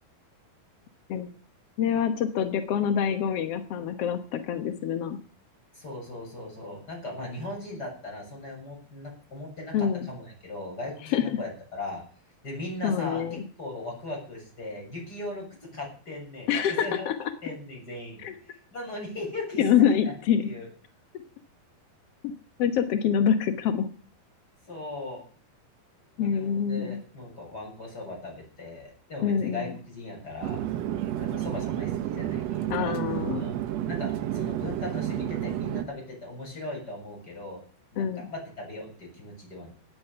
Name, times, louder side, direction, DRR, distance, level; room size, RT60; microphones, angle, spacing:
voice 1, 1.8-5.2 9.7-10.1 11.1-11.2 12.8-13.4 16.5-17.3 18.2-18.3 19.6-20.5 22.6-23.9 26.2-27.0 29.2-29.7 32.7-33.4 38.0-38.2, left 8 dB, 75° left, 9 dB, 1.4 m, -26 dB
voice 2, 5.7-12.0 12.4-13.2 13.6-16.5 16.8-17.1 17.4-20.1 20.4-20.7 24.7-25.2 26.2-30.6 31.1-32.9 33.3-33.5 33.8-37.6 37.9-39.7, left 2 dB, 25° left, 0 dB, 7.8 m, -38 dB
Chatter / Fixed-wing aircraft airplane, 30.4-35.8, right 12 dB, 90° right, 1.4 m, -30 dB
18.0 x 10.5 x 6.8 m, 0.43 s
omnidirectional pair, 4.4 m